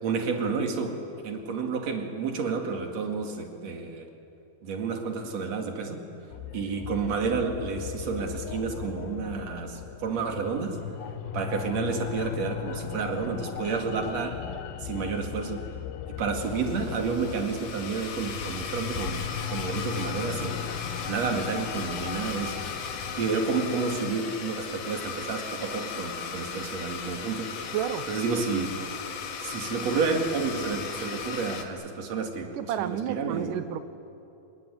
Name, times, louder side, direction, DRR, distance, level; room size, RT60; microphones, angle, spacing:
voice 1, 0.0-4.1 4.6-6.0 6.5-10.8 11.3-14.4 14.8-15.7 16.1-20.7 21.1-22.6 23.2-27.6 28.1-28.8 29.4-33.6, right 5 dB, 50° right, 4 dB, 3.2 m, -30 dB
sound 1, 6.3-23.3, left 10 dB, 80° left, 2.6 m, -38 dB
Domestic sounds home sounds, 16.4-31.7, left 6 dB, 65° left, 3.2 m, -36 dB
voice 2, 27.6-28.1 32.5-33.8, right 10 dB, 75° right, 12 dB, 2.4 m, -31 dB
26.5 x 21.5 x 9.5 m, 2.8 s
omnidirectional pair, 4.1 m